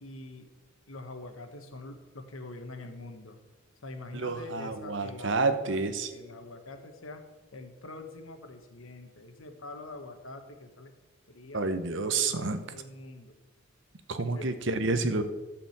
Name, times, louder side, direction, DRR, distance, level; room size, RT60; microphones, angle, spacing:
voice 1, 0.0-0.5 0.9-3.4 3.8-5.8 6.1-7.2 7.5-10.9 11.3-11.7 12.2-13.3 14.2-14.5, left 2 dB, 80° left, 6 dB, 1.4 m, -44 dB
voice 2, 4.1-6.1 11.5-12.6 14.1-15.2, right 3 dB, 60° right, 10 dB, 0.8 m, -29 dB
12.5 x 5.0 x 7.2 m, 1.2 s
head